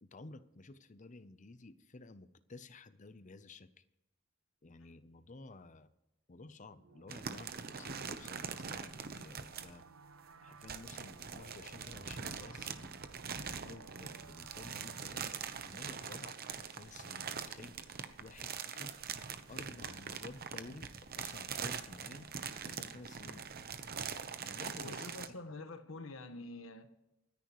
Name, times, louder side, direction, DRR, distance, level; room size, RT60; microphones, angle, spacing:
voice 1, 0.0-3.8 4.6-5.9 6.3-9.8 10.4-12.9 13.4-17.8 18.2-18.9 19.5-22.3 22.6-23.5 24.4-25.0 25.3-25.4, left 2 dB, 35° left, 0.7 m, -53 dB
sound 1, 6.8-17.1, right 4 dB, 75° right, 0.6 m, -58 dB
sound 2, 7.1-9.8 10.5-25.3, right 6 dB, 45° right, 0.9 m, -43 dB
voice 2, 24.8-26.9, left 2 dB, 75° left, 1.4 m, -47 dB
24.5 x 10.5 x 3.1 m
head